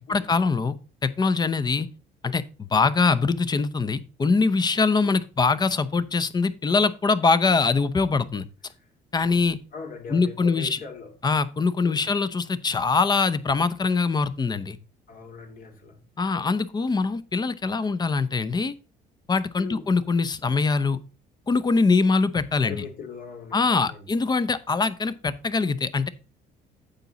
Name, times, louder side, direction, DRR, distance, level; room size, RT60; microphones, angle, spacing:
voice 1, 0.1-0.8 1.0-1.9 2.2-8.4 9.1-9.6 10.1-10.8 11.2-14.8 16.2-18.7 19.3-21.0 21.5-22.8 23.5-26.1, left 4 dB, 25° left, 0.7 m, -23 dB
voice 2, 9.7-11.1 11.8-12.1 15.1-16.0 19.6-19.9 22.6-24.1, left 5 dB, 55° left, 2.2 m, -40 dB
9.0 x 7.1 x 4.0 m
cardioid pair, 110°, 17 cm